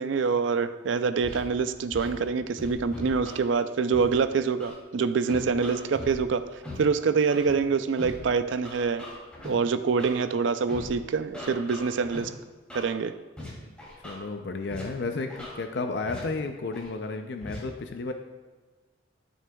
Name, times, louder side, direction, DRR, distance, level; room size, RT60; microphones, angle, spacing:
voice 1, 0.0-6.5 6.8-9.0 9.4-12.3 12.7-13.1, right 5 dB, 75° right, 12 dB, 0.4 m, -25 dB
Scratching (performance technique), 1.2-1.4 1.9-2.1 2.6-3.4 3.9-4.0 4.6-4.7 5.3-6.1 6.6-6.8 7.3-7.5 8.0-8.1 8.6-9.5 10.0-10.1 10.7-10.9 11.3-12.2 12.7-12.9 13.4-13.5 13.8-14.2 14.7-14.8 15.3-15.5 16.1-16.2 16.7-16.9 17.4-17.6, left 1 dB, 5° left, 2.5 m, -40 dB
voice 2, 14.0-18.1, left 3 dB, 60° left, 6 dB, 0.4 m, -32 dB
12.5 x 6.4 x 2.3 m, 1.3 s
head